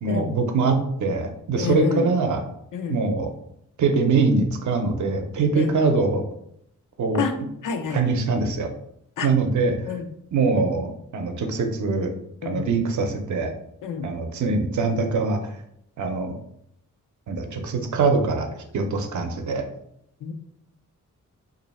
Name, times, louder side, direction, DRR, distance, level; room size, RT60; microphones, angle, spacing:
voice 1, 0.0-2.4 2.9-3.3 3.8-6.3 7.0-7.3 7.9-8.7 9.2-10.0 10.3-12.1 12.4-13.5 14.0-15.6 16.0-16.4 17.3-19.7, right 4 dB, 70° right, 6 dB, 0.6 m, -23 dB
voice 2, 1.5-2.1 2.7-3.0 5.6-5.7 7.2-7.3 7.6-8.0 9.2-9.3 9.9-10.1 12.4-12.7 13.8-14.1 20.2-20.3, left 6 dB, 85° left, 7 dB, 0.5 m, -28 dB
3.0 x 2.6 x 4.1 m, 0.75 s
wide cardioid pair, 145°, 31 cm